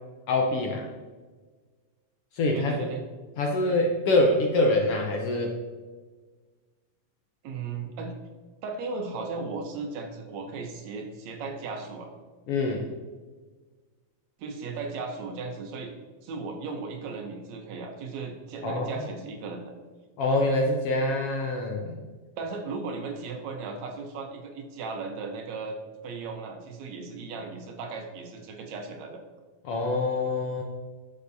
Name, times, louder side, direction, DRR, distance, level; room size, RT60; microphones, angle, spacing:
voice 1, 0.3-0.9 2.3-2.9 3.4-5.6 12.5-12.9 18.6-18.9 20.2-22.0 29.6-30.6, left 2 dB, 70° left, 1 dB, 1.5 m, -25 dB
voice 2, 2.5-3.0 7.4-8.1 8.6-12.1 14.4-15.9 16.2-19.7 22.4-25.8 26.0-29.2, right 4 dB, 75° right, 3 dB, 2.2 m, -36 dB
11.0 x 7.0 x 2.7 m, 1.4 s
omnidirectional pair, 3.3 m